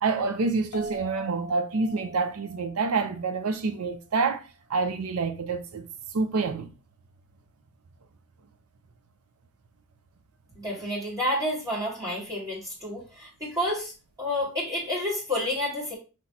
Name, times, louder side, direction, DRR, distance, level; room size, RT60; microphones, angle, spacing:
voice 1, 0.0-5.9 6.1-6.7, right 4 dB, 80° right, 0.5 m, -27 dB
sound 1, 0.7-4.0, left 1 dB, 80° left, 0.6 m, -43 dB
voice 2, 10.5-13.9 14.2-15.9, left 1 dB, 15° right, 1.5 m, -29 dB
5.7 x 3.1 x 2.7 m
head